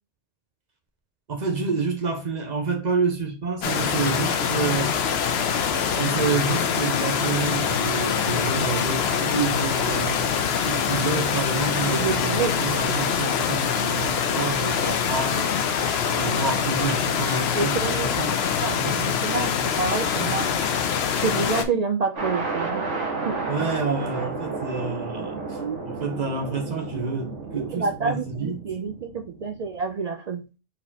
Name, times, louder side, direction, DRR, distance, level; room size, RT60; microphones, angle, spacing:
voice 1, 1.3-5.0 5.9-10.3 10.6-15.5 16.1-18.3 18.6-19.0 23.5-25.6 25.8-28.6, right 4 dB, 40° right, 1.1 m, -28 dB
sound 1, 3.6-21.6, left 7 dB, 65° left, 0.8 m, -24 dB
voice 2, 11.9-12.8 17.5-18.1 18.6-20.5 21.2-23.5 25.6-25.8 27.6-30.5, right 5 dB, 65° right, 0.4 m, -28 dB
sound 2, 22.2-29.7, right 3 dB, 90° right, 1.5 m, -32 dB
4.3 x 4.2 x 2.8 m
omnidirectional pair, 1.2 m